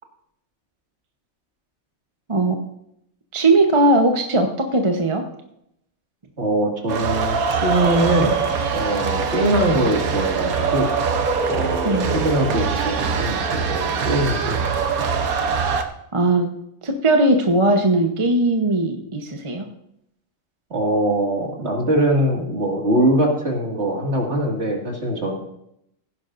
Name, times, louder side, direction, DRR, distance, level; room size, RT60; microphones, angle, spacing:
voice 1, 3.3-5.2 11.8-12.1 16.1-16.5 16.8-19.7, right 2 dB, 25° right, 3 dB, 0.9 m, -19 dB
voice 2, 6.4-8.4 8.7-10.9 11.5-14.8 20.7-25.3, right 1 dB, 50° right, 0 dB, 2.4 m, -22 dB
sound 1, 6.9-15.8, right 5 dB, 85° right, 1.4 m, -23 dB
16.5 x 10.5 x 2.6 m, 0.76 s
omnidirectional pair, 1.5 m